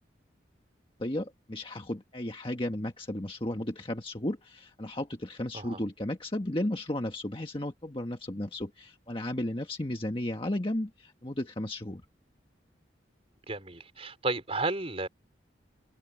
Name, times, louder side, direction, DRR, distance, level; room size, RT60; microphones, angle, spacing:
voice 1, 1.0-12.0, left 1 dB, 30° left, 1.5 m, -34 dB
voice 2, 13.5-15.1, right 2 dB, 30° right, 4.6 m, -32 dB
head